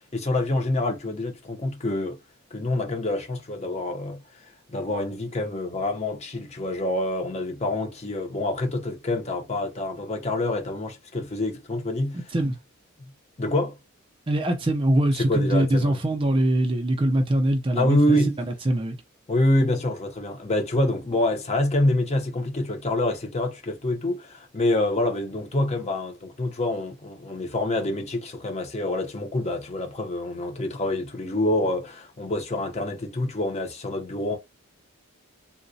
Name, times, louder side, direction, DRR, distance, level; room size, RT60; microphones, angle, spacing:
voice 1, 0.1-2.2 2.5-12.2 13.4-13.8 15.2-16.0 17.7-18.4 19.3-34.4, left 1 dB, 30° left, 0.6 m, -26 dB
voice 2, 14.3-19.0, right 1 dB, 25° right, 0.4 m, -23 dB
3.7 x 2.1 x 2.6 m
head